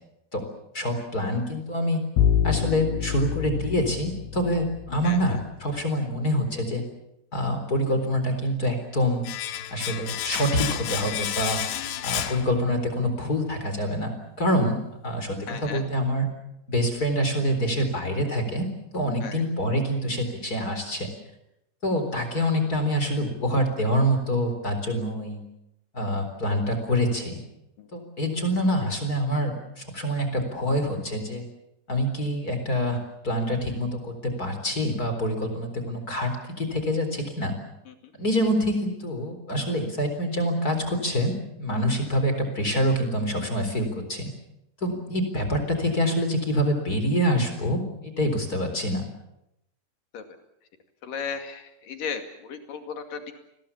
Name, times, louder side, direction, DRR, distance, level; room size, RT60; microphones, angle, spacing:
voice 1, 0.7-2.0 2.4-6.8 7.3-9.2 9.7-11.6 12.0-14.1 14.4-14.8 15.0-16.3 16.7-18.7 18.9-21.1 21.8-25.4 25.9-27.4 27.9-31.4 31.9-33.0 33.2-36.3 36.6-37.5 38.2-44.3 44.8-49.0, equal, 20° left, 6 dB, 3.9 m, -26 dB
Bowed string instrument, 2.2-5.2, left 8 dB, 90° left, 3.4 m, -26 dB
voice 2, 5.0-5.4 11.7-11.9 15.5-15.8 19.2-19.4 27.8-27.9 37.9-38.0 50.1-50.2 51.0-53.3, left 6 dB, 55° left, 6 dB, 3.7 m, -36 dB
Domestic sounds home sounds, 9.2-13.1 13.3-13.5, left 11 dB, 75° left, 3.4 m, -31 dB
29.5 x 21.0 x 7.2 m, 0.82 s
omnidirectional pair, 5.0 m